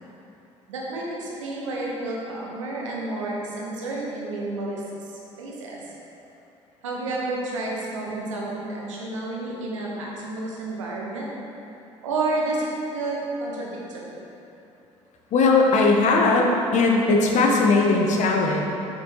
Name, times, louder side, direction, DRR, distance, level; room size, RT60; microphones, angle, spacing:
voice 1, 0.7-5.1 5.4-5.8 6.8-11.3 12.0-14.2, right 2 dB, 80° right, -3 dB, 1.0 m, -30 dB
voice 2, 15.3-18.6, left 3 dB, 50° left, 0 dB, 0.9 m, -19 dB
6.9 x 5.7 x 2.9 m, 2.9 s
figure-of-eight pair, 55°, 16 cm